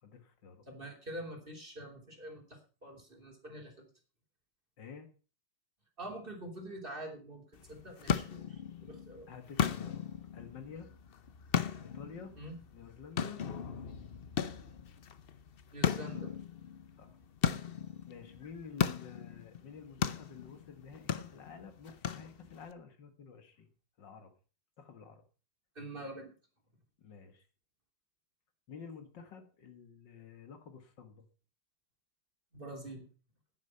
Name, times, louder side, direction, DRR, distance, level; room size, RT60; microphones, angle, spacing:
voice 1, 0.0-0.7 4.8-5.1 9.3-10.9 11.8-12.3 12.7-14.0 17.0-17.2 18.1-23.7 24.0-24.3 24.8-25.2 27.0-27.4 28.7-31.3, left 6 dB, 70° left, 7 dB, 2.2 m, -50 dB
voice 2, 0.7-3.9 6.0-9.3 12.4-12.6 15.7-16.3 25.7-26.3 32.5-33.1, right 1 dB, 25° right, 2 dB, 3.1 m, -45 dB
sound 1, 7.5-22.7, left 8 dB, 85° left, 0.5 m, -37 dB
10.5 x 10.0 x 5.6 m, 0.37 s
omnidirectional pair, 2.1 m